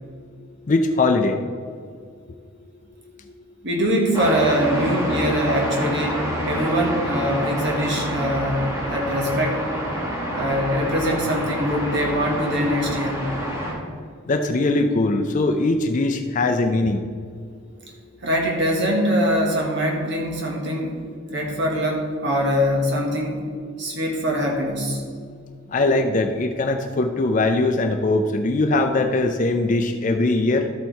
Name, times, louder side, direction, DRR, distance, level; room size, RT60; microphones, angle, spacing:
voice 1, 0.7-1.4 14.3-17.0 25.7-30.7, left 2 dB, 35° left, 5 dB, 0.4 m, -21 dB
voice 2, 3.6-9.6 10.3-13.3 18.2-21.0 21.3-23.4 23.8-25.0, equal, 55° right, 0 dB, 1.3 m, -23 dB
sound 1, 4.1-13.7, equal, 15° right, 2.4 m, -28 dB
13.0 x 4.4 x 4.6 m, 2.1 s
head